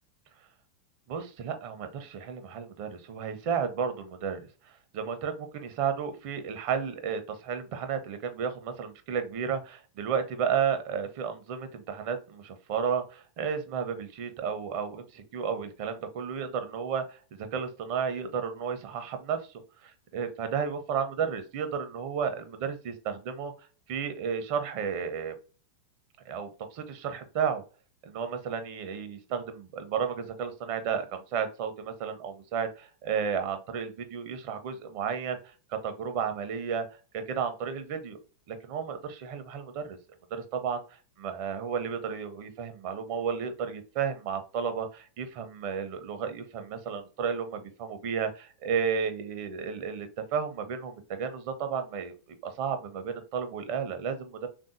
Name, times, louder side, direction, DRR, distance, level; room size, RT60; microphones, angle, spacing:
voice 1, 1.1-19.4 19.8-23.5 23.9-25.3 26.3-27.6 28.0-35.5 35.8-36.9 37.1-38.2 38.5-40.0 40.3-40.8 41.2-52.1 52.4-54.5, right 7 dB, 45° right, 8 dB, 0.6 m, -32 dB
3.6 x 2.5 x 2.5 m, 0.35 s
figure-of-eight pair, 90°, 0 cm